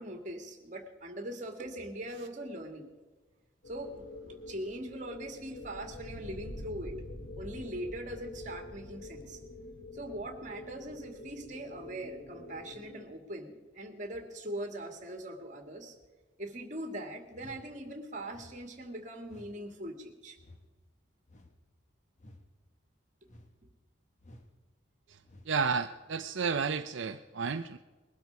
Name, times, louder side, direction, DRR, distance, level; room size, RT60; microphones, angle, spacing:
voice 1, 0.0-2.9 3.7-7.0 7.4-9.4 9.9-15.9 16.4-20.4, right 1 dB, 40° right, 4 dB, 2.2 m, -41 dB
sound 1, 3.6-13.0, left 2 dB, 90° left, 2.5 m, -46 dB
sound 2, 17.3-17.7 18.3-18.6 19.2-19.6 20.4-20.6 21.3-21.6 22.2-22.4 23.2-23.6 24.2-24.5 25.2-25.5, left 1 dB, 40° left, 1.5 m, -54 dB
voice 2, 25.5-27.8, right 5 dB, 75° right, 7 dB, 0.6 m, -31 dB
21.0 x 12.5 x 4.7 m, 1.3 s
head